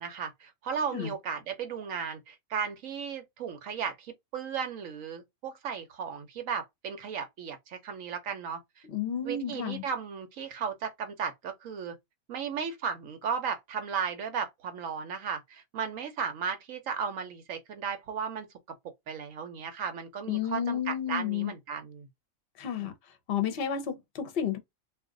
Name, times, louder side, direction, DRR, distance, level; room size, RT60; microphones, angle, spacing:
voice 1, 0.0-8.6 9.2-12.0 12.3-18.5 19.1-22.1 22.8-22.9, right 6 dB, 80° right, 1.1 m, -35 dB
voice 2, 8.9-9.8 20.3-21.5 22.6-22.9 23.3-24.6, left 8 dB, 55° left, 0.9 m, -31 dB
2.5 x 2.4 x 3.7 m
omnidirectional pair, 1.4 m